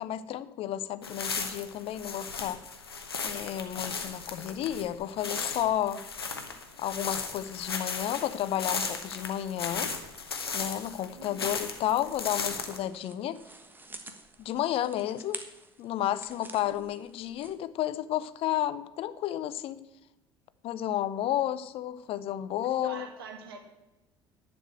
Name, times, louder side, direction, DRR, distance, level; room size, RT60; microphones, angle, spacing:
voice 1, 0.0-2.6 3.2-6.0 6.8-9.9 10.5-13.4 14.4-15.4 15.8-19.8 20.6-23.1, left 12 dB, 50° left, 15 dB, 0.6 m, -32 dB
sound 1, 1.0-12.8, left 5 dB, 85° left, 1.0 m, -36 dB
voice 2, 11.1-11.5 16.6-16.8 22.8-23.6, right 5 dB, 75° right, 5 dB, 1.6 m, -44 dB
sound 2, 11.7-17.5, right 2 dB, 15° right, 1.3 m, -48 dB
11.0 x 5.2 x 7.8 m, 1.0 s
figure-of-eight pair, 60°, 12 cm